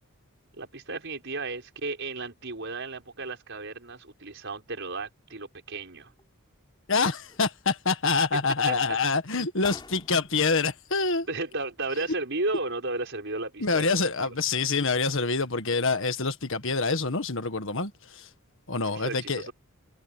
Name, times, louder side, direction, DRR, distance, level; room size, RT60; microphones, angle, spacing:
voice 1, 0.6-6.1 8.7-9.0 11.3-14.3 18.9-19.5, right 3 dB, 55° right, 5.8 m, -34 dB
sound 1, 5.9-6.7 7.1-7.9 8.5-8.8 9.3-9.4 9.6-11.5 11.8-11.9, left 3 dB, 20° left, 5.6 m, -47 dB
voice 2, 6.9-11.3 13.6-18.3 18.7-19.5, left 4 dB, 60° left, 1.7 m, -26 dB
head